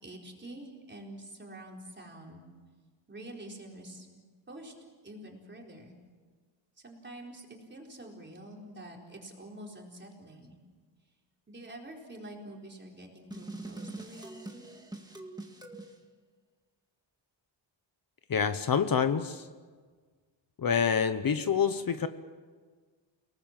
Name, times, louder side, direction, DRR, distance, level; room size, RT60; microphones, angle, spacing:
voice 1, 0.0-2.4 3.1-4.7 5.0-5.9 6.8-10.6 11.5-14.7, right 1 dB, 25° right, 0 dB, 4.4 m, -47 dB
sound 1, 13.3-15.9, right 2 dB, 10° right, 2.0 m, -43 dB
voice 2, 18.3-19.4 20.6-22.1, left 7 dB, 50° left, 10 dB, 1.0 m, -27 dB
30.0 x 19.0 x 7.6 m, 1.5 s
wide cardioid pair, 165°, 44 cm